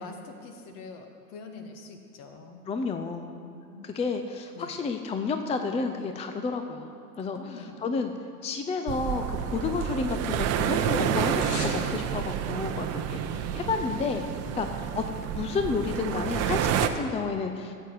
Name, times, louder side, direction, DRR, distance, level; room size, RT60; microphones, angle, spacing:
voice 1, 0.0-2.6 3.2-3.9 4.5-4.8 7.2-8.0 14.5-14.7, left 4 dB, 50° left, 5 dB, 1.6 m, -45 dB
voice 2, 2.7-3.4 3.8-8.1 8.4-14.2 14.5-14.7 14.9-15.0 15.3-17.7, left 4 dB, 15° left, 6 dB, 0.5 m, -31 dB
sound 1, 8.9-16.9, right 9 dB, 35° right, 0.8 m, -29 dB
sound 2, 9.1-10.3 10.6-11.8 12.1-12.2, left 2 dB, 80° left, 2.1 m, -41 dB
15.5 x 8.0 x 4.7 m, 2.5 s
hypercardioid pair, 90°, 45 cm